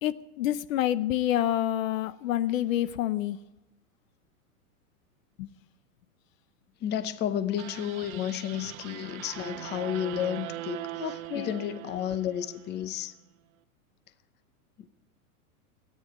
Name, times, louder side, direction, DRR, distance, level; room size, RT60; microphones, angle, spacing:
voice 1, 0.0-3.4 5.4-5.5 11.0-11.5, left 12 dB, 60° left, 0.7 m, -28 dB
voice 2, 6.8-13.1 14.8-14.9, left 10 dB, 25° left, 0.8 m, -32 dB
sound 1, 7.6-12.8, right 15 dB, 65° right, 0.9 m, -41 dB
13.5 x 9.7 x 9.3 m
hypercardioid pair, 125°, 45 cm